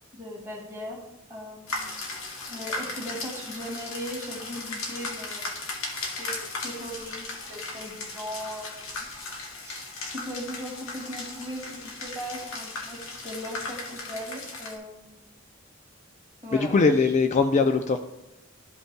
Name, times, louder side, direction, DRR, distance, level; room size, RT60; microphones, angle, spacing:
voice 1, 0.1-1.0 1.3-1.9 2.5-5.6 6.2-9.2 9.6-9.8 10.1-15.3 16.4-16.7, equal, 15° right, -4 dB, 2.1 m, -38 dB
sound 1, 1.7-14.8, left 3 dB, 70° left, 1.2 m, -36 dB
voice 2, 16.5-18.0, left 4 dB, 35° left, 7 dB, 0.4 m, -21 dB
12.5 x 5.3 x 2.2 m, 0.92 s
head